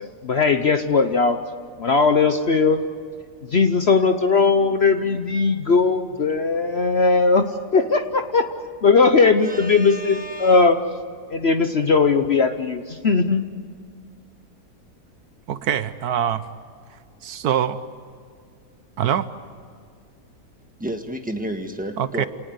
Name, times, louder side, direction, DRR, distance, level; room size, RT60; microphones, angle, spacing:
voice 1, 0.0-1.4 1.8-2.8 3.5-7.5 7.7-8.5 8.8-10.8 11.3-13.4, left 4 dB, 50° left, 8 dB, 0.9 m, -18 dB
voice 2, 9.4-10.7 20.8-22.3, right 1 dB, 5° right, 5 dB, 1.5 m, -31 dB
voice 3, 15.5-16.4 17.2-17.8 19.0-19.3 22.0-22.3, right 9 dB, 70° right, 13 dB, 1.3 m, -23 dB
28.0 x 19.0 x 8.1 m, 2.1 s
omnidirectional pair, 1.7 m